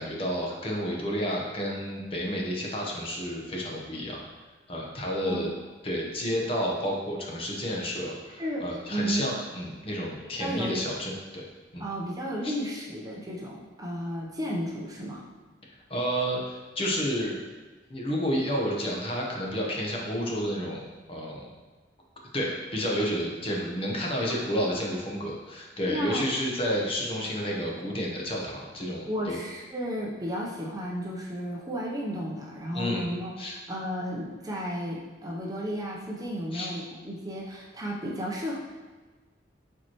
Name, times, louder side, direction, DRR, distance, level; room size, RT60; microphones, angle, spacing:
voice 1, 0.0-4.2 4.7-5.5 5.8-11.4 11.7-11.8 12.4-12.5 15.9-17.4 17.9-20.8 21.1-21.5 22.3-29.4 32.7-33.1 33.4-33.5 36.5-36.7, equal, 30° left, -2 dB, 1.0 m, -30 dB
voice 2, 5.2-5.5 8.2-8.6 8.9-9.3 10.4-10.8 11.8-15.2 24.5-24.6 25.8-26.3 29.1-38.6, equal, 20° right, -3 dB, 0.7 m, -33 dB
7.0 x 4.5 x 3.0 m, 1.3 s
head